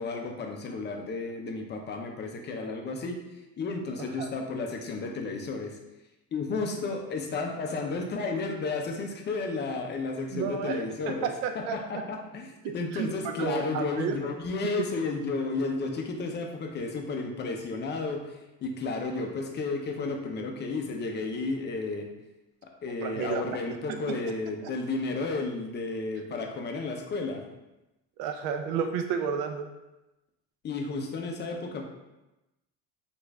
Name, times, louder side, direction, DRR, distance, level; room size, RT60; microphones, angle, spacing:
voice 1, 0.0-3.2 3.6-5.8 6.3-11.3 11.5-22.1 22.6-27.4 30.6-31.9, left 3 dB, 25° left, 2 dB, 0.4 m, -32 dB
voice 2, 10.3-11.8 12.6-14.2 23.0-23.4 23.9-24.2 24.6-24.7 28.2-29.6, right 7 dB, 75° right, 5 dB, 0.5 m, -32 dB
3.1 x 2.5 x 3.3 m, 0.99 s
supercardioid pair, 105°, 45 cm